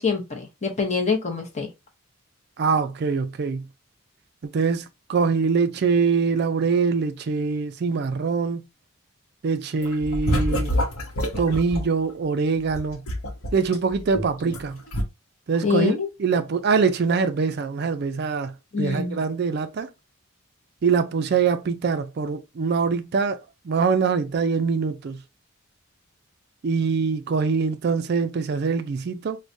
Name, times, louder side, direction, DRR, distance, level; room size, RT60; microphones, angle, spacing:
voice 1, 0.0-1.7 15.6-16.1 18.7-19.2, left 5 dB, 30° left, 0.7 m, -25 dB
voice 2, 2.6-3.6 4.4-8.6 9.4-10.8 11.4-13.0 13.5-14.8 15.5-19.9 20.8-25.2 26.6-29.4, right 5 dB, 45° right, 0.3 m, -24 dB
sound 1, 9.8-11.9 12.7-14.6 14.9-15.0, equal, 75° left, 0.8 m, -26 dB
4.6 x 2.1 x 2.6 m
head